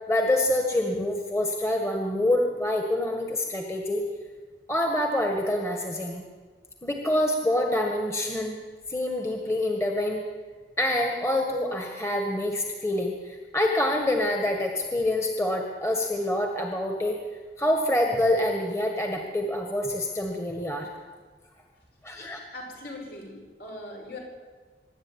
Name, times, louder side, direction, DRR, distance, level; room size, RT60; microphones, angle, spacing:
voice 1, 0.1-4.0 4.7-6.2 6.8-8.6 8.9-10.3 10.8-17.2 17.6-20.9 22.0-22.4, left 1 dB, 15° left, 2 dB, 1.7 m, -26 dB
voice 2, 22.5-24.2, left 1 dB, 65° left, 0 dB, 6.1 m, -40 dB
24.5 x 11.5 x 9.7 m, 1.4 s
head